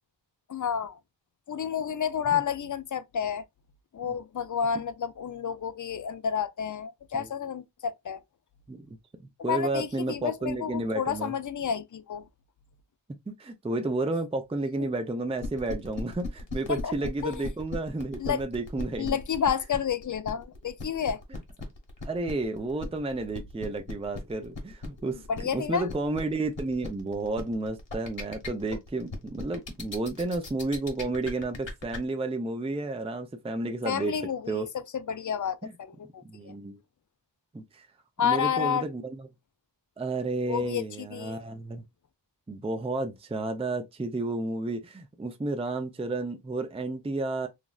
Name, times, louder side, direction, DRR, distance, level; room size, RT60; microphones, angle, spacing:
voice 1, 0.5-1.0 1.5-3.4 3.9-8.2 9.4-12.2 14.8-14.9 16.7-16.9 17.2-17.5 18.2-18.4 19.0-21.2 25.3-25.9 33.8-36.5 38.2-38.9 40.5-40.8 41.1-41.4, left 7 dB, 45° left, 0.4 m, -30 dB
voice 2, 9.4-11.4 13.3-19.2 21.3-21.4 22.0-25.2 25.5-34.2 34.5-34.7 35.6-35.7 36.2-36.8 37.5-37.9 38.2-39.3 40.0-41.8 42.5-47.5, right 2 dB, 15° right, 0.4 m, -31 dB
sound 1, 15.4-32.0, left 3 dB, 85° left, 1.0 m, -38 dB
3.1 x 2.5 x 2.3 m
wide cardioid pair, 60°, 44 cm